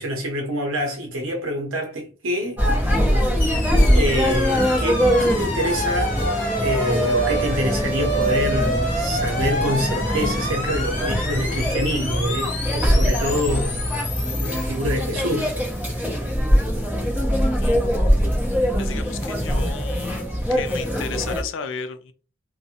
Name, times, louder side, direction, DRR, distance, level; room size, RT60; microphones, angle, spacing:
voice 1, 0.0-3.0 3.9-13.9 14.3-15.5 15.9-16.3, equal, 85° right, 0.6 m, -26 dB
sound 1, 2.6-21.4, equal, 10° right, 0.7 m, -22 dB
sound 2, 3.4-15.6, equal, 40° left, 0.8 m, -28 dB
voice 2, 17.6-17.9 18.8-20.2 20.5-22.1, left 6 dB, 70° left, 0.4 m, -34 dB
2.4 x 2.1 x 2.7 m
head